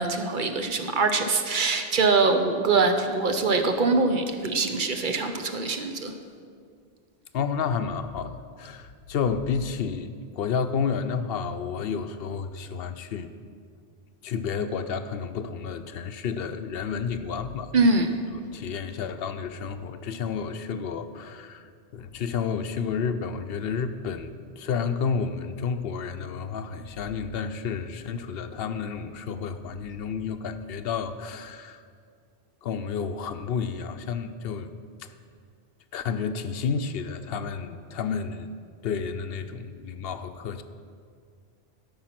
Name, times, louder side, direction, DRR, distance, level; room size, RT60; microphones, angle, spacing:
voice 1, 0.0-6.1 17.7-18.1, right 3 dB, 55° right, 6 dB, 0.8 m, -23 dB
voice 2, 7.3-13.3 14.2-17.7 18.5-31.8 32.6-34.7 35.0-35.1 35.9-38.5 38.8-40.6, left 6 dB, 70° left, 10 dB, 0.8 m, -31 dB
13.5 x 5.6 x 5.8 m, 2.2 s
omnidirectional pair, 1.1 m